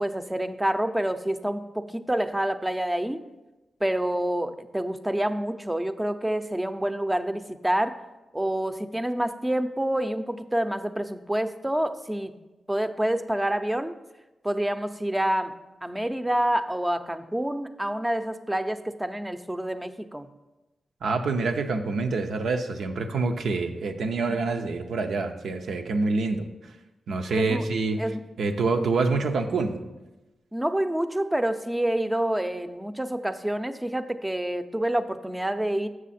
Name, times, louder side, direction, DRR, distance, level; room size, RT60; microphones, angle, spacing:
voice 1, 0.0-3.2 3.8-8.0 8.3-12.3 12.7-13.9 14.4-20.3 24.0-24.1 27.3-27.7 28.0-28.2 28.6-28.7 30.5-35.9, right 1 dB, 15° right, 10 dB, 0.6 m, -27 dB
voice 2, 21.0-26.5 27.1-28.0 28.4-29.8, right 3 dB, 80° right, 5 dB, 0.6 m, -26 dB
6.9 x 6.3 x 4.2 m, 1.1 s
supercardioid pair, 45°, 0 cm